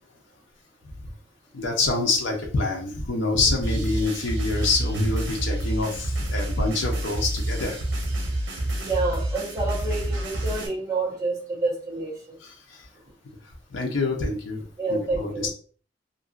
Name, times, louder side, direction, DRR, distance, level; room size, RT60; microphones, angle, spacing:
voice 1, 1.5-7.8 8.7-8.8 12.4-12.8 13.7-14.6 14.9-15.5, left 3 dB, 75° left, 0 dB, 0.7 m, -26 dB
sound 1, 3.6-10.7, right 1 dB, 80° right, 0.8 m, -28 dB
voice 2, 8.7-12.4 14.8-15.5, right 3 dB, 20° right, -5 dB, 1.0 m, -28 dB
2.9 x 2.6 x 2.4 m, 0.41 s
head